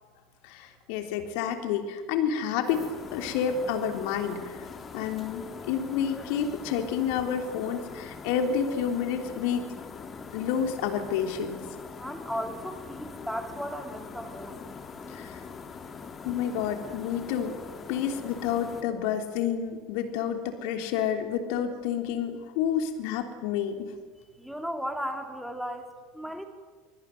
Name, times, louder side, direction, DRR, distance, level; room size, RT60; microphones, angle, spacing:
voice 1, 0.4-4.7 4.9-9.7 10.3-11.6 15.1-15.4 16.2-17.6 17.9-23.9, left 8 dB, 55° left, 6 dB, 3.5 m, -29 dB
sound 1, 2.6-18.8, left 5 dB, 25° left, 2.8 m, -42 dB
voice 2, 12.0-14.6 15.0-15.2 24.4-26.4, equal, ahead, 5 dB, 3.5 m, -36 dB
24.5 x 24.0 x 9.5 m, 1.5 s
figure-of-eight pair, 75°, 0 cm